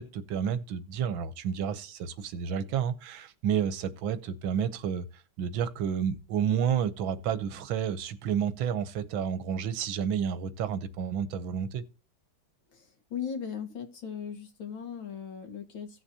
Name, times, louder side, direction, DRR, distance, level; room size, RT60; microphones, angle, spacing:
voice 1, 0.0-11.8, right 8 dB, 85° right, 1.6 m, -30 dB
voice 2, 13.1-15.9, left 7 dB, 85° left, 2.6 m, -37 dB
16.5 x 6.3 x 2.8 m
omnidirectional pair, 2.1 m